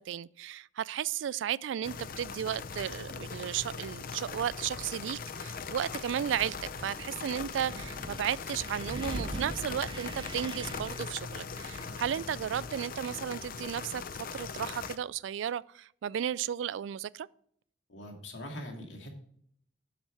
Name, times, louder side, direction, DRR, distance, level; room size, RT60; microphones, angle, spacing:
voice 1, 0.0-6.6 6.8-14.0 14.3-17.3, right 9 dB, 85° right, 0.3 m, -34 dB
sound 1, 1.8-15.0, left 5 dB, 50° left, 0.6 m, -40 dB
sound 2, 4.7-12.3, equal, 5° right, 1.6 m, -59 dB
Wind, 5.5-12.8, right 1 dB, 25° right, 0.7 m, -44 dB
voice 2, 17.9-19.1, left 1 dB, 85° left, 2.3 m, -42 dB
7.7 x 7.3 x 4.7 m
head